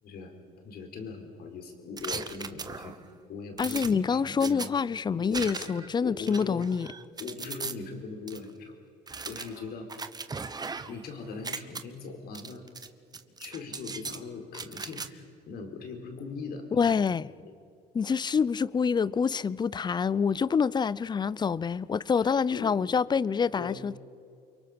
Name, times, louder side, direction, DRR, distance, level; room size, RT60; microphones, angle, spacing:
voice 1, 0.6-3.0 3.3-4.7 5.1-6.7 7.2-8.7 9.3-9.9 10.9-12.6 13.4-16.9 17.4-17.5 22.2-22.7 23.5-23.8, left 4 dB, 65° left, 4.7 m, -40 dB
sound 1, 2.0-3.1 3.6-4.7 5.3-5.9 6.2-7.7 8.3-8.4 9.1-11.0 11.3-11.8 12.3-12.9 13.1-14.2 14.5-15.1, right 4 dB, 25° right, 1.2 m, -38 dB
voice 2, 3.6-6.9 16.8-17.3 17.9-24.0, left 6 dB, 25° left, 0.6 m, -26 dB
29.0 x 23.5 x 6.9 m
cardioid pair, 110°, 17 cm